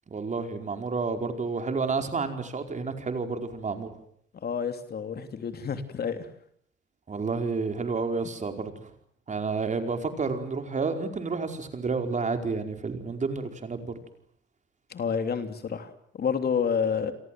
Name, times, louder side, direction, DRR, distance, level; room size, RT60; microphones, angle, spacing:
voice 1, 0.1-3.9 7.1-8.9 9.3-13.9, right 4 dB, 40° right, 6 dB, 4.8 m, -30 dB
voice 2, 4.4-6.3 14.9-17.1, left 6 dB, 55° left, 8 dB, 3.2 m, -29 dB
30.0 x 23.0 x 7.8 m, 0.67 s
cardioid pair, 90°, 20 cm